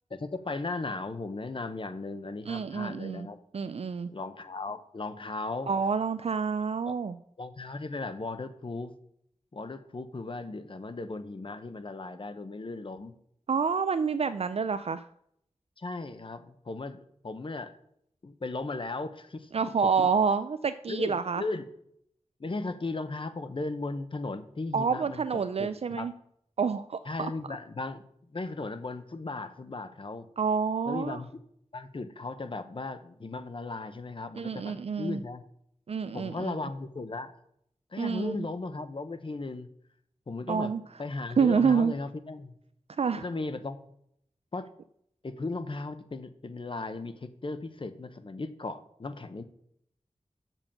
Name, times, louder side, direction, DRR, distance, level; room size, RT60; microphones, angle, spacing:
voice 1, 0.1-3.4 4.1-5.7 6.9-7.0 7.4-8.9 9.5-13.1 15.8-17.7 18.2-19.5 20.0-20.1 20.9-21.7 22.4-26.1 27.0-28.0 28.3-30.3 30.9-31.4 31.7-35.4 36.1-37.3 37.9-39.7 40.3-40.7 41.0-42.5 43.2-43.9 44.5-44.7 45.2-49.4, left 3 dB, 45° left, 10 dB, 0.9 m, -36 dB
voice 2, 2.5-3.3 3.5-4.1 5.7-7.2 13.5-15.0 19.5-21.4 24.7-26.1 26.6-27.3 30.4-31.2 34.3-35.2 35.9-36.6 38.0-38.5 40.5-40.8 41.4-41.9 43.0-43.2, right 6 dB, 60° right, 11 dB, 0.4 m, -28 dB
7.0 x 5.5 x 7.0 m, 0.70 s
wide cardioid pair, 65°, 12 cm